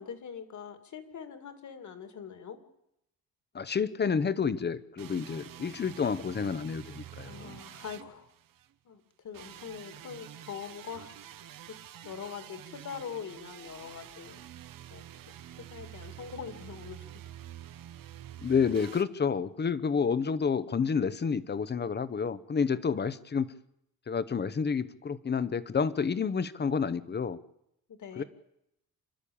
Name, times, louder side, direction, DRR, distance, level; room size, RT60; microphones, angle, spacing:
voice 1, 0.0-2.6 7.2-8.3 8.8-11.8 12.0-14.4 14.9-15.0 15.6-17.2 27.9-28.2, left 7 dB, 50° left, 9 dB, 2.5 m, -43 dB
voice 2, 3.5-7.5 18.4-23.5 24.1-27.4 28.2-28.3, left 6 dB, 30° left, 16 dB, 0.9 m, -29 dB
sound 1, 5.0-8.7 9.3-19.0, right 11 dB, 65° right, 1.1 m, -48 dB
27.5 x 12.0 x 8.7 m, 0.81 s
cardioid pair, 135°, 36 cm